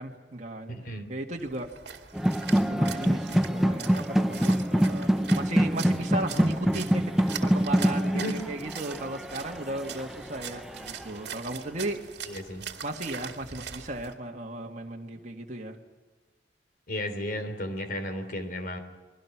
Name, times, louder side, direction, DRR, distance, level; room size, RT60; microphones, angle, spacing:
voice 1, 0.0-1.7 2.7-12.1 12.8-15.8, right 1 dB, 40° right, 0 dB, 2.0 m, -36 dB
voice 2, 0.7-1.1 8.1-8.4 12.3-12.6 16.9-18.8, left 1 dB, 50° left, 7 dB, 3.3 m, -34 dB
Splash splatter, 1.4-14.1, right 7 dB, 60° right, 2.2 m, -42 dB
sound 1, 2.1-11.0, equal, ahead, 0.7 m, -26 dB
30.0 x 22.5 x 6.1 m, 1.3 s
head